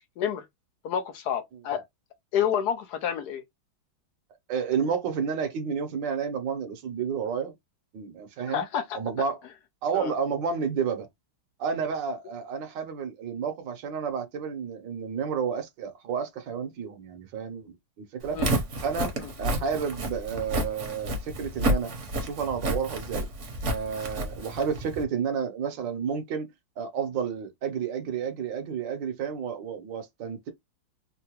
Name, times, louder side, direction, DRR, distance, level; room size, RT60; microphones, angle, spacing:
voice 1, 0.8-1.8 2.3-3.4 8.5-9.0 9.9-10.1 18.3-18.6, left 9 dB, 70° left, 1.0 m, -29 dB
voice 2, 4.5-7.5 7.9-8.6 8.9-9.4 9.8-11.1 11.6-18.4 18.8-19.1 19.4-23.2 23.7-26.5 26.8-30.5, right 6 dB, 70° right, 1.4 m, -31 dB
Walk footsteps, 18.2-25.0, right 1 dB, 45° right, 1.0 m, -30 dB
3.7 x 2.2 x 2.9 m
omnidirectional pair, 2.2 m